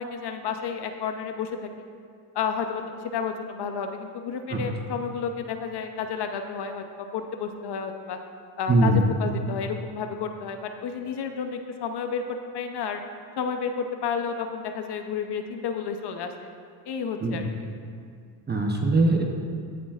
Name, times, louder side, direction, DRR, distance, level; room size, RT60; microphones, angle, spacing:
voice 1, 0.0-1.7 2.3-8.2 8.6-13.0 13.4-16.5 16.9-17.7, left 6 dB, 55° left, 6 dB, 0.7 m, -31 dB
voice 2, 8.7-9.0 17.2-17.4 18.5-19.2, right 2 dB, 20° right, 1 dB, 0.7 m, -21 dB
15.5 x 8.4 x 2.4 m, 2.2 s
cardioid pair, 115°, 50 cm